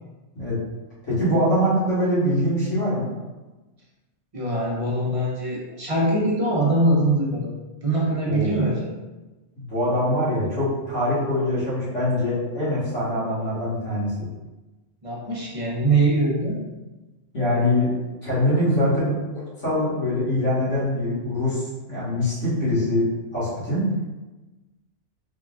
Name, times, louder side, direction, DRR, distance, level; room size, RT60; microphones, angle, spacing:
voice 1, 1.1-3.1 8.2-8.5 9.6-14.1 17.3-17.9 18.2-19.2 19.6-23.0 23.3-23.8, left 1 dB, 80° left, -10 dB, 2.0 m, -23 dB
voice 2, 4.3-7.5 7.8-8.9 15.0-16.6, right 2 dB, 35° right, -4 dB, 0.7 m, -22 dB
3.8 x 3.6 x 2.4 m, 1.1 s
omnidirectional pair, 1.2 m